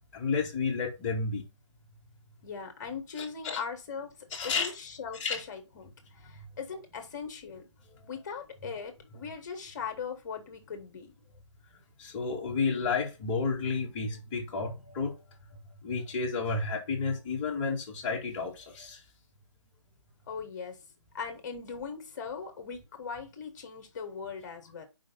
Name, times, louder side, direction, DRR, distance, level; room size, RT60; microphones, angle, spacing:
voice 1, 0.1-1.4 3.2-3.6 4.3-4.7 5.2-5.4 12.0-15.1 15.8-19.0, left 4 dB, 20° left, 1.8 m, -31 dB
voice 2, 2.4-4.1 4.4-7.7 8.1-11.1 20.3-20.8 21.1-24.8, left 6 dB, 35° left, 1.7 m, -39 dB
5.0 x 3.8 x 5.5 m
figure-of-eight pair, 145°, 16 cm